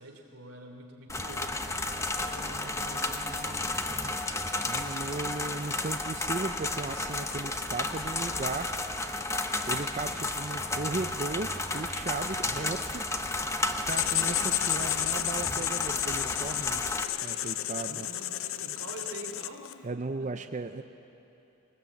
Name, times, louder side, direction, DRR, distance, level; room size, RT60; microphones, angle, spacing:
voice 1, 0.0-3.9 17.9-19.7 20.2-20.5, right 1 dB, 90° right, 2 dB, 3.2 m, -45 dB
sound 1, 1.1-17.0, left 2 dB, 15° left, 0.9 m, -32 dB
voice 2, 4.7-8.7 9.7-13.1 13.7-16.8 17.2-18.1 19.8-20.8, right 3 dB, 35° right, 7 dB, 0.6 m, -36 dB
Writing, 13.9-19.8, left 14 dB, 65° left, 0.5 m, -32 dB
22.0 x 19.5 x 8.4 m, 2.9 s
head